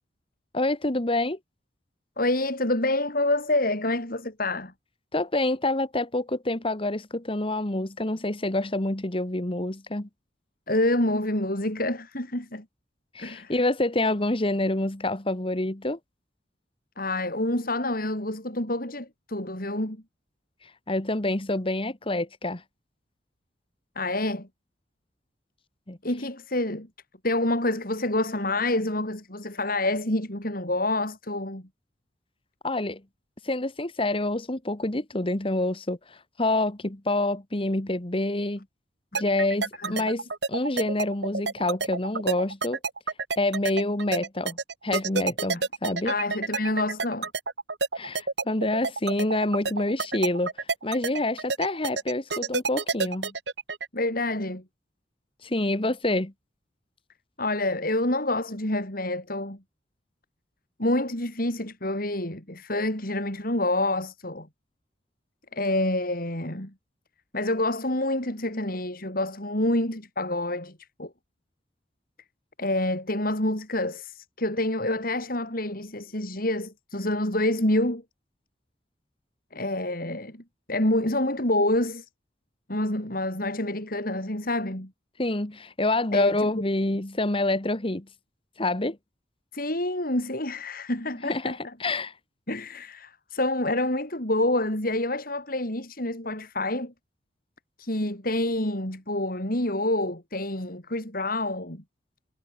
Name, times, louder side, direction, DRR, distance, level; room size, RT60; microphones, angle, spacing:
voice 1, 0.5-1.4 5.1-10.1 13.1-16.0 20.6-22.6 25.9-26.0 32.6-33.0 33.4-38.6 39.1-42.8 43.4-44.6 44.8-46.1 47.9-50.5 50.8-53.3 55.4-56.3 85.2-88.1 88.6-89.0 91.2-92.1, left 2 dB, 30° left, 1.6 m, -27 dB
voice 2, 2.2-4.7 10.7-12.6 13.2-13.5 17.0-20.0 24.0-24.5 26.0-26.9 27.2-31.6 39.8-40.1 46.0-47.3 53.9-54.6 57.4-59.6 60.8-64.5 65.5-66.7 67.3-70.7 71.0-71.1 72.6-78.0 79.5-80.4 80.7-82.1 82.7-84.9 86.1-86.5 89.5-91.6 92.5-96.9 97.8-101.8, left 1 dB, 55° left, 6.2 m, -27 dB
sound 1, 39.2-53.9, right 4 dB, 70° right, 3.0 m, -29 dB
head